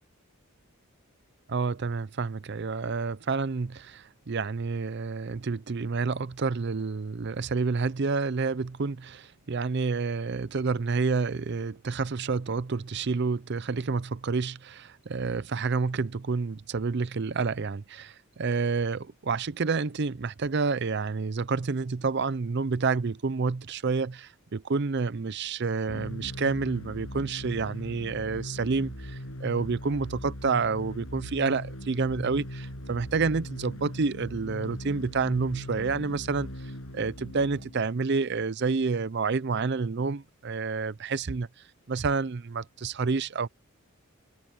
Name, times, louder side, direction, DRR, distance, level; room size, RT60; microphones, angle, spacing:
voice 1, 1.5-36.5 36.9-41.5 41.9-43.5, right 4 dB, 50° right, 0.5 m, -29 dB
sound 1, 25.9-37.9, equal, 75° left, 7.6 m, -40 dB
head